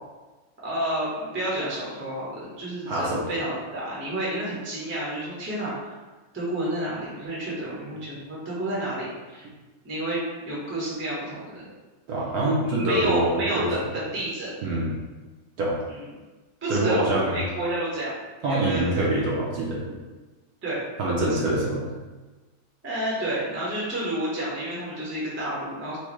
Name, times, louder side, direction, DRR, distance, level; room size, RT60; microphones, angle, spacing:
voice 1, 0.6-6.0 6.3-9.4 9.8-11.7 12.6-14.5 15.9-16.0 16.6-18.2 18.5-19.1 20.6-20.8 21.3-21.6 22.8-26.0, right 1 dB, 15° right, -7 dB, 0.5 m, -30 dB
voice 2, 2.9-3.2 12.1-13.7 14.6-14.9 15.6-15.8 16.7-17.4 18.4-20.0 21.0-21.9, right 1 dB, 65° right, -5 dB, 1.0 m, -25 dB
4.5 x 2.1 x 3.0 m, 1.2 s
omnidirectional pair, 2.0 m